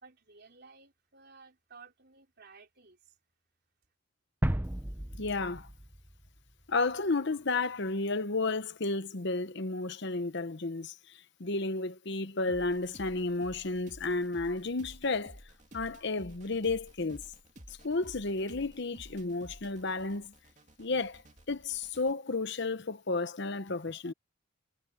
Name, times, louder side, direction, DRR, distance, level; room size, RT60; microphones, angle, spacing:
voice 1, 0.0-3.2, right 4 dB, 50° right, 4.3 m, -56 dB
sound 1, 4.4-6.9, right 1 dB, 10° right, 0.7 m, -34 dB
voice 2, 5.2-5.7 6.7-15.4 15.7-17.2 17.8-20.3 20.8-21.2 21.5-24.1, left 3 dB, 55° left, 1.0 m, -32 dB
sound 2, 12.5-22.1, right 1 dB, 35° right, 2.6 m, -53 dB
head